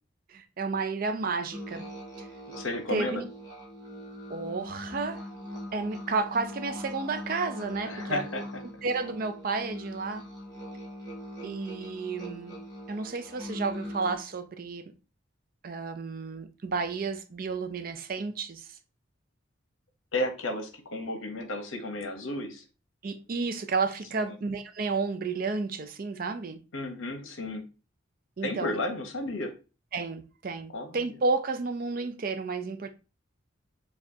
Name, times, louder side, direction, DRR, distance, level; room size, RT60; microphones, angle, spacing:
voice 1, 0.3-1.9 2.2-2.3 2.9-3.2 4.3-5.2 5.7-8.4 8.8-10.3 11.4-12.6 12.9-14.8 15.6-18.8 23.0-26.6 28.4-28.7 29.9-32.9, right 4 dB, 45° right, 0.4 m, -32 dB
sound 1, 1.5-14.2, equal, 20° left, 1.1 m, -41 dB
voice 2, 2.6-3.2 7.8-8.4 20.1-22.6 24.1-24.3 26.7-27.6 28.4-29.5 30.7-31.0, left 1 dB, 75° left, 0.9 m, -33 dB
7.1 x 2.4 x 2.7 m
head